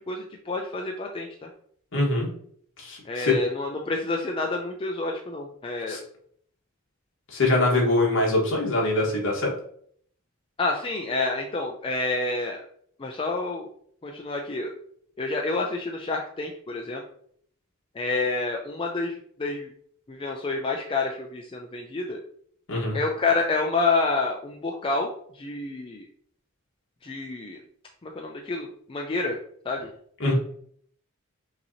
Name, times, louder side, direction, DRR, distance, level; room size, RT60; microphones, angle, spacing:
voice 1, 0.1-1.5 3.1-6.0 10.6-12.6 13.0-13.7 14.0-14.7 15.2-17.0 17.9-19.7 20.1-22.2 22.9-26.0 27.0-27.6 28.0-29.4 29.7-29.9, left 3 dB, 25° left, 1 dB, 0.4 m, -28 dB
voice 2, 1.9-2.3 2.8-3.3 5.9-6.0 7.3-9.5 22.7-23.0 30.2-30.3, left 2 dB, 60° left, -2 dB, 1.5 m, -23 dB
5.8 x 2.9 x 2.7 m, 0.62 s
head